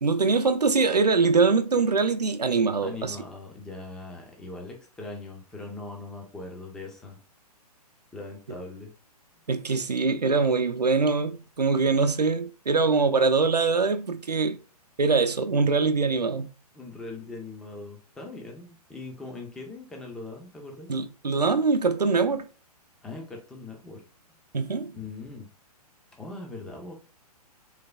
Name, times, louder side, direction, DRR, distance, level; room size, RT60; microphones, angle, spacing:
voice 1, 0.0-3.2 9.5-14.6 15.0-16.5 20.9-22.5 24.5-24.9, right 4 dB, 85° right, 0.4 m, -23 dB
voice 2, 2.8-7.2 8.1-8.9 16.7-20.9 23.0-24.0 24.9-25.5 26.2-26.9, left 3 dB, 5° left, 0.3 m, -40 dB
3.3 x 3.2 x 2.2 m
figure-of-eight pair, 120°, 20 cm